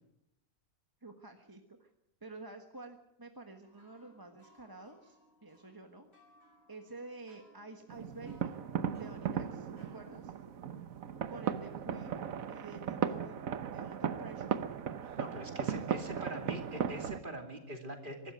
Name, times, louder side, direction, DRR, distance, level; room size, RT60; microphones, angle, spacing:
voice 1, 1.0-1.9 2.2-5.2 5.4-6.1 6.7-8.6 9.0-10.3 11.3-12.2 12.5-14.6 15.7-16.6, right 3 dB, 15° right, 5 dB, 1.3 m, -50 dB
sound 1, 3.6-10.5, equal, 65° left, 6.7 m, -66 dB
sound 2, 7.9-17.2, right 8 dB, 70° right, 1.4 m, -37 dB
voice 2, 15.2-18.3, right 1 dB, 35° right, 4 dB, 2.9 m, -43 dB
24.0 x 13.0 x 9.3 m, 0.83 s
omnidirectional pair, 1.5 m